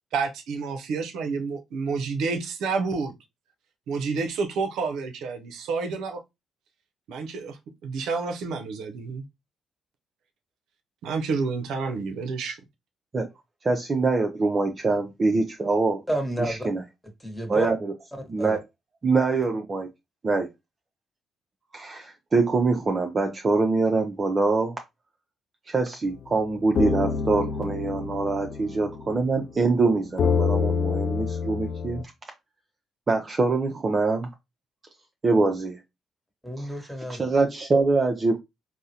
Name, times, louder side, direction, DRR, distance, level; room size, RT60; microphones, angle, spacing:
voice 1, 0.1-3.1 3.9-6.2 7.1-9.2 11.0-12.6, right 4 dB, 85° right, 0.5 m, -29 dB
voice 2, 13.6-16.0 16.5-16.8 17.5-17.9 18.3-18.6 19.0-19.9 20.2-20.5 21.7-24.7 25.7-32.0 33.1-34.3 35.2-35.8 36.6-36.7 37.1-38.4, right 3 dB, 35° right, 0.5 m, -24 dB
voice 3, 16.1-16.7 17.2-17.7 18.4-18.6 36.4-37.4, equal, ahead, 1.1 m, -30 dB
sound 1, 26.1-26.2 26.7-32.0, left 6 dB, 60° left, 0.3 m, -27 dB
3.6 x 2.0 x 2.7 m
cardioid pair, 90°, 0 cm